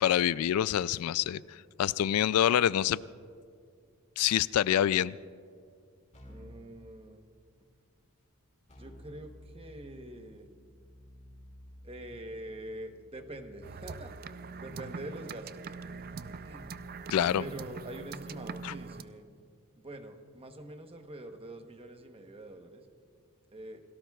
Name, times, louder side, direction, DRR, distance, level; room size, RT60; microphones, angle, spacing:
voice 1, 0.0-1.4 1.8-3.0 4.2-5.1 17.1-17.4 18.6-18.7, left 10 dB, 80° left, 18 dB, 0.3 m, -26 dB
Keyboard (musical), 6.1-6.7 8.7-17.6, equal, 30° left, 4.9 m, -54 dB
voice 2, 6.3-7.3 8.8-10.5 11.8-15.7 16.2-16.8 17.4-19.3 19.7-22.9 23.5-23.8, right 1 dB, 25° right, 6 dB, 1.0 m, -45 dB
sound 1, 13.6-19.0, right 4 dB, 45° right, 0.4 m, -43 dB
28.5 x 18.0 x 2.3 m, 2.2 s
head